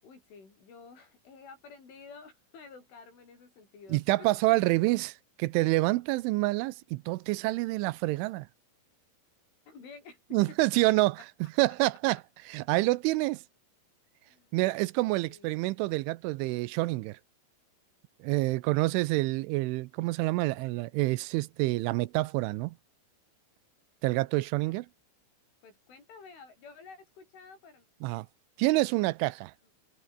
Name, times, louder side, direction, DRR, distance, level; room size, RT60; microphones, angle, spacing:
voice 1, 0.0-4.3 9.7-10.8 14.2-14.6 15.3-15.6 24.7-24.8 25.6-27.9, left 5 dB, 75° left, 10.5 m, -51 dB
voice 2, 3.9-8.5 10.3-11.2 11.6-12.2 12.5-13.4 14.5-17.2 18.2-22.8 24.0-24.9 28.0-28.3 28.6-29.5, right 21 dB, 85° right, 3.1 m, -27 dB
omnidirectional pair, 5.6 m